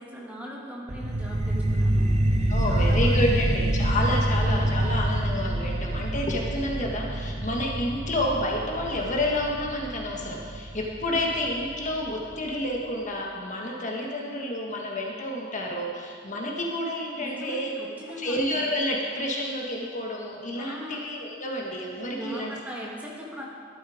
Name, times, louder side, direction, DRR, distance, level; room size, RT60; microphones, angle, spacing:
voice 1, 0.0-2.1 2.6-3.6 17.2-18.7 20.5-21.0 22.1-23.4, equal, 10° right, -4 dB, 1.9 m, -40 dB
sound 1, 0.9-11.9, right 1 dB, 35° right, 0.8 m, -26 dB
voice 2, 2.5-17.7 18.2-22.5, left 1 dB, 40° left, -1 dB, 1.5 m, -29 dB
12.5 x 11.5 x 5.0 m, 2.1 s
head